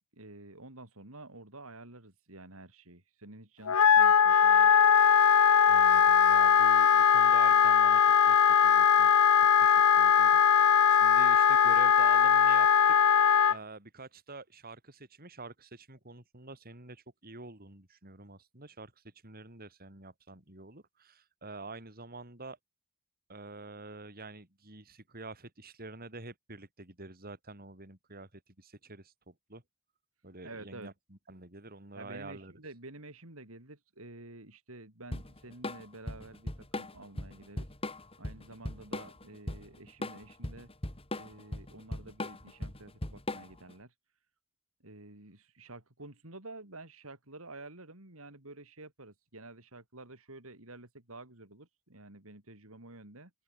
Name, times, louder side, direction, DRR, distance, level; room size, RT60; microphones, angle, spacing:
voice 1, 0.1-4.7 30.4-30.9 31.9-37.7 38.2-40.7 41.1-43.9 44.8-53.3, right 2 dB, 65° right, 4.4 m, -50 dB
Wind instrument woodwind instrument, 3.7-13.6, left 8 dB, 75° left, 0.7 m, -21 dB
voice 2, 5.7-13.0 13.5-22.6 23.3-29.6 30.2-32.5, right 3 dB, 40° right, 4.4 m, -47 dB
Drum kit / Drum, 35.1-43.7, left 1 dB, 25° left, 3.0 m, -38 dB
open air
head